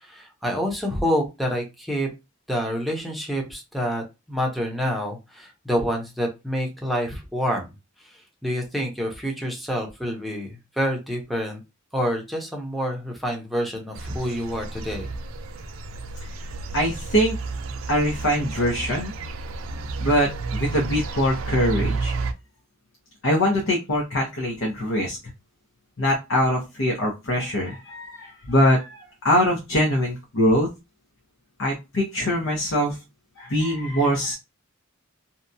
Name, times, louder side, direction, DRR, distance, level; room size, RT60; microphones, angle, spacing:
voice 1, 0.0-2.1 2.5-7.6 8.4-11.6 11.9-15.1, equal, ahead, 0 dB, 0.6 m, -27 dB
sound 1, 13.9-22.3, right 3 dB, 90° right, 0.4 m, -31 dB
voice 2, 16.7-17.4 17.9-19.1 20.0-22.1 23.2-25.2 26.0-30.7 31.6-33.0 33.4-34.3, equal, 75° left, -1 dB, 0.8 m, -23 dB
2.7 x 2.2 x 2.6 m, 0.25 s
head